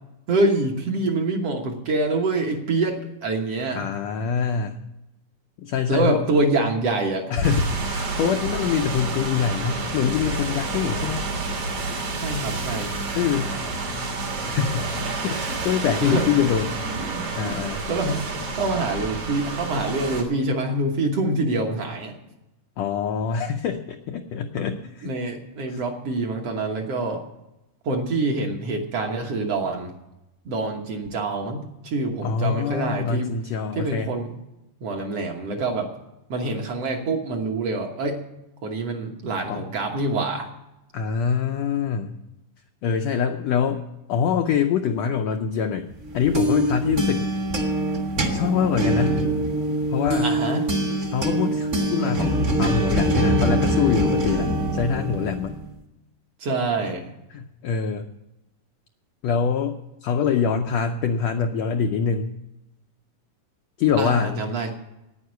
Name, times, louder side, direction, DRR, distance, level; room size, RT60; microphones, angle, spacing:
voice 1, 0.3-3.9 5.9-7.3 12.2-13.0 16.0-16.2 16.9-17.6 17.9-18.2 18.5-22.2 24.5-24.7 25.0-27.2 27.8-29.9 30.5-33.3 33.7-34.3 34.8-35.9 36.3-38.2 38.6-40.5 50.2-50.6 56.4-57.1 64.0-64.7, right 2 dB, 55° right, 2 dB, 1.9 m, -25 dB
voice 2, 3.7-4.8 5.6-6.2 7.3-11.2 13.1-13.5 14.4-14.9 15.2-16.7 17.3-17.8 22.8-25.1 25.7-25.8 32.2-34.1 39.4-39.7 40.9-42.1 42.8-43.8 44.1-45.9 46.1-47.3 48.3-49.2 49.9-50.3 51.1-55.6 57.3-58.0 59.2-62.3 63.8-64.4, left 7 dB, 80° left, 5 dB, 1.5 m, -24 dB
sound 1, 7.4-20.2, right 3 dB, 75° right, 4.3 m, -29 dB
sound 2, 46.0-55.7, right 1 dB, 35° right, 1.1 m, -24 dB
9.6 x 9.5 x 9.3 m, 0.93 s
omnidirectional pair, 3.8 m